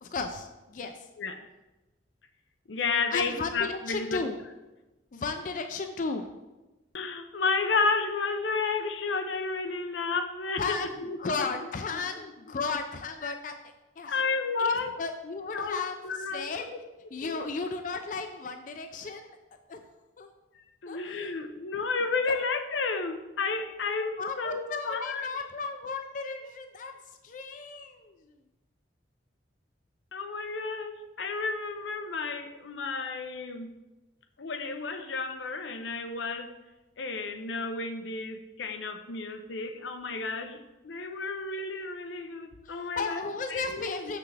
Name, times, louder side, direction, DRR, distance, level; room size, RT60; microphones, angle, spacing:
voice 1, 0.0-1.0 3.1-4.4 5.1-6.3 10.6-13.6 14.0-14.2 14.6-16.0 16.3-16.6 17.1-19.4 19.7-19.8 20.2-20.3 20.9-21.3 24.2-27.0 27.2-28.4 42.6-44.2, left 4 dB, 45° left, 6 dB, 0.4 m, -34 dB
voice 2, 2.7-4.2 6.9-11.5 11.9-12.0 13.2-13.3 14.1-14.9 15.5-16.8 17.2-17.4 20.8-25.4 30.1-33.8 34.4-36.6 37.0-43.2 43.5-44.2, left 4 dB, 85° left, 7 dB, 0.6 m, -32 dB
6.9 x 5.9 x 3.3 m, 1.1 s
head